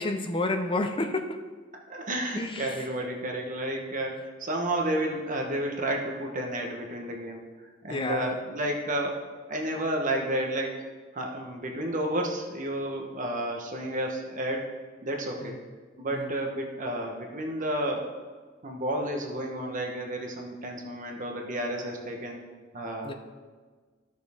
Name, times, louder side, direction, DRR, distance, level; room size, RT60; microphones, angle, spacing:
voice 1, 0.0-1.4 2.4-2.8 7.9-8.4 15.4-15.6 16.1-16.3 23.0-23.1, left 2 dB, 25° left, 6 dB, 0.6 m, -30 dB
voice 2, 1.9-7.4 7.8-9.2 9.5-10.8 11.1-14.7 15.0-15.6 16.0-18.1 18.6-22.4 22.7-23.1, right 1 dB, 40° right, 1 dB, 1.1 m, -31 dB
13.5 x 6.4 x 3.5 m, 1.4 s
head